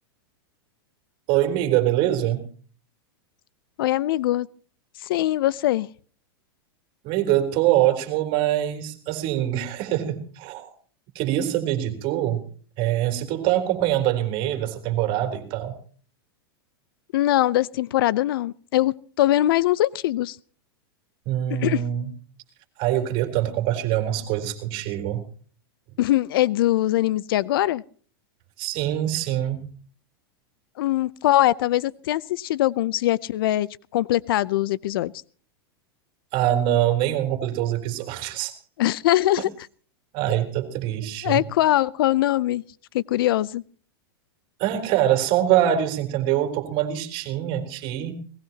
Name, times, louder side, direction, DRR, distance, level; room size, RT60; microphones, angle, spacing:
voice 1, 1.3-2.5 7.0-10.7 11.2-12.4 12.8-15.8 21.3-22.1 22.8-25.2 28.6-29.7 36.3-38.6 40.1-41.5 44.6-48.1, right 12 dB, 45° right, 7 dB, 3.6 m, -24 dB
voice 2, 3.8-4.5 5.0-5.9 17.1-20.4 21.5-21.8 26.0-27.8 30.8-35.1 38.8-39.5 41.2-42.6 42.9-43.6, left 14 dB, 70° left, 22 dB, 0.6 m, -22 dB
21.0 x 19.0 x 2.9 m, 0.43 s
hypercardioid pair, 120°, 13 cm